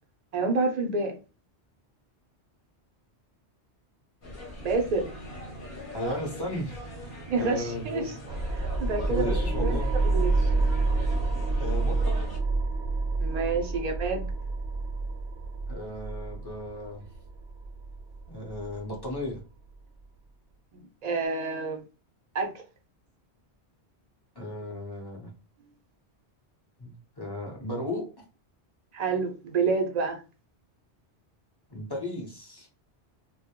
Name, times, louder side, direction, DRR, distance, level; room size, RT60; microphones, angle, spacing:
voice 1, 0.3-1.1 4.6-5.1 7.3-8.1 8.5-9.8 10.1-10.5 13.2-14.3 21.0-21.8 22.3-22.5 28.9-30.2, right 4 dB, 50° right, 0.5 m, -28 dB
sound 1, 4.2-12.4, equal, 55° left, 0.9 m, -42 dB
voice 2, 5.9-8.1 9.1-9.9 11.6-12.2 15.7-17.1 18.3-19.4 24.4-25.3 26.8-26.9 27.2-28.1 31.7-32.7, left 1 dB, 25° left, 0.6 m, -35 dB
sound 2, 8.3-19.3, right 3 dB, 70° right, 0.9 m, -28 dB
2.2 x 2.1 x 2.8 m
omnidirectional pair, 1.1 m